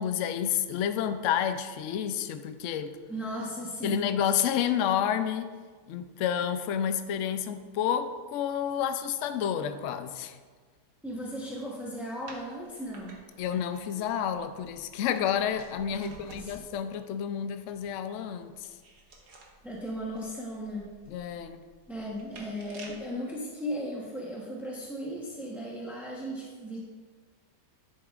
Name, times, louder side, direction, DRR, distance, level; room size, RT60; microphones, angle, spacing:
voice 1, 0.0-3.0 3.8-5.5 5.9-10.4 13.4-18.7 21.1-21.6, left 9 dB, 90° left, 9 dB, 0.6 m, -30 dB
voice 2, 3.1-4.1 11.0-13.2 15.9-16.6 19.6-20.9 21.9-26.8, equal, ahead, -4 dB, 0.6 m, -36 dB
sound 1, 12.3-16.8 18.2-23.1, right 2 dB, 65° right, 1.7 m, -53 dB
10.5 x 8.5 x 2.4 m, 1.5 s
omnidirectional pair, 1.9 m